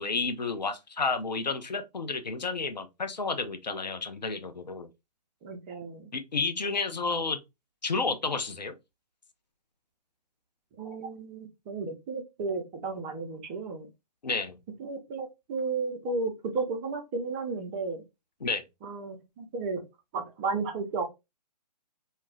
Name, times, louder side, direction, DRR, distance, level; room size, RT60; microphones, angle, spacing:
voice 1, 0.0-4.9 6.1-7.4 7.8-8.7 14.2-14.6 18.4-18.6, left 4 dB, 90° left, 0.6 m, -31 dB
voice 2, 5.4-6.1 10.8-13.9 14.8-18.0 18.8-19.8 20.1-21.0, right 4 dB, 20° right, 0.5 m, -33 dB
2.3 x 2.1 x 3.1 m
figure-of-eight pair, 135°, 21 cm